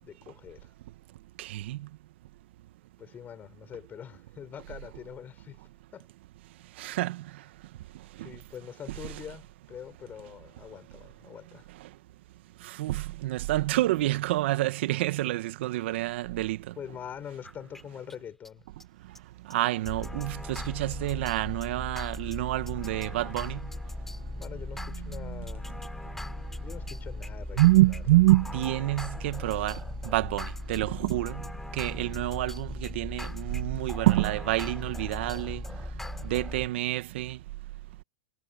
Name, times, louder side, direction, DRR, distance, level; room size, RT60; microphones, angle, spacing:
voice 1, 0.0-0.7 3.0-5.6 5.9-6.1 8.2-11.7 16.8-18.6 24.3-25.8 26.6-28.0, left 9 dB, 25° left, 5.9 m, -44 dB
voice 2, 1.4-1.8 6.8-7.2 9.0-9.1 12.6-16.6 19.5-23.6 25.2-25.4 27.6-29.8 30.0-31.4 31.7-35.6 36.2-37.4, right 17 dB, 65° right, 1.7 m, -27 dB
sound 1, 17.4-17.8 18.1-18.2 18.4-18.5 18.8-18.9 19.1-19.2 19.5-19.6 19.8-36.7, left 1 dB, 5° left, 3.9 m, -38 dB
hypercardioid pair, 115°, 7 cm